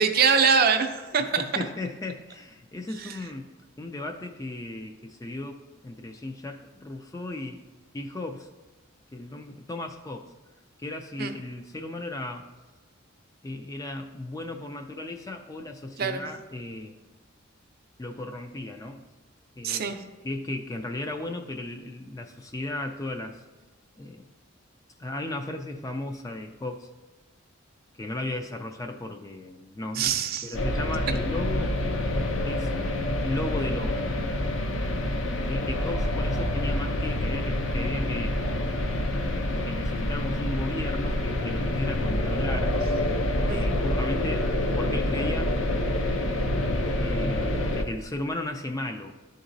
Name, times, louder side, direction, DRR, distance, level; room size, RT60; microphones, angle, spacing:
voice 1, 0.0-1.4 3.0-3.1 11.2-11.3 16.0-16.2 19.6-20.0 29.9-30.5 43.5-43.7, right 6 dB, 50° right, 7 dB, 0.5 m, -23 dB
voice 2, 1.3-3.5 3.8-7.6 7.9-8.5 9.1-10.3 10.8-12.5 13.4-16.9 18.0-19.0 19.6-19.9 20.2-23.4 24.0-24.3 25.0-26.9 28.0-30.0 30.4-31.8 32.5-32.8 33.2-34.2 34.9-35.2 35.5-38.4 39.7-42.8 43.5-44.5 44.8-45.5 47.0-49.2, left 2 dB, 15° left, 5 dB, 0.3 m, -35 dB
sound 1, 30.5-47.8, left 1 dB, 70° left, 0.6 m, -27 dB
11.0 x 3.9 x 2.6 m, 1.2 s
head